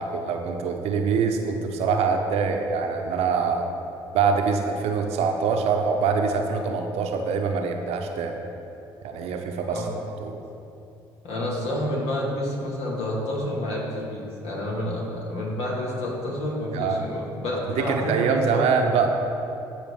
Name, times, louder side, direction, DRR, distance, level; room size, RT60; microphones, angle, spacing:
voice 1, 0.0-3.7 4.1-8.4 9.0-9.8 10.2-10.4 16.7-17.0 17.7-19.1, right 5 dB, 70° right, 4 dB, 0.8 m, -24 dB
voice 2, 11.2-18.6, left 1 dB, 65° left, -3 dB, 2.0 m, -29 dB
14.0 x 5.0 x 3.6 m, 2.8 s
hypercardioid pair, 55°, 11 cm